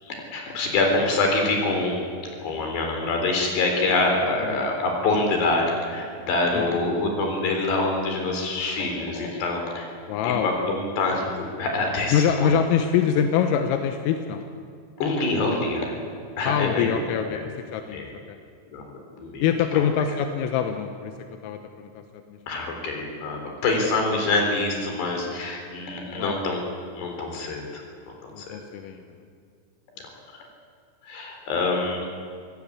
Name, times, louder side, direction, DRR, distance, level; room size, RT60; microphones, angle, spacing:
voice 1, 0.0-2.0 2.4-9.9 10.2-12.5 15.0-16.0 16.4-16.9 17.3-17.4 17.9-18.1 18.7-18.8 19.1-19.5 22.5-26.6 26.9-27.8 28.2-28.6 30.3-30.4 31.0-32.0, left 2 dB, 55° left, 2 dB, 5.9 m, -25 dB
voice 2, 10.1-10.5 12.1-14.4 16.5-18.4 19.4-21.1 21.4-22.0 22.3-22.4 26.2-26.4 28.3-29.0, left 8 dB, 85° left, 6 dB, 3.8 m, -24 dB
26.0 x 17.5 x 8.7 m, 2.2 s
omnidirectional pair, 5.9 m